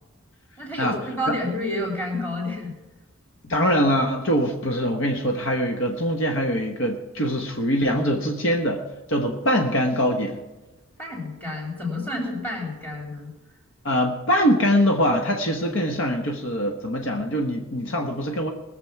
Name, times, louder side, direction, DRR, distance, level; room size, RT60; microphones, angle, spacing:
voice 1, 0.6-2.7 11.0-13.3, left 1 dB, 10° left, -1 dB, 3.0 m, -29 dB
voice 2, 3.4-8.8 9.1-10.4 13.8-18.5, equal, 60° left, 3 dB, 1.1 m, -23 dB
20.5 x 6.9 x 5.8 m, 1.1 s
head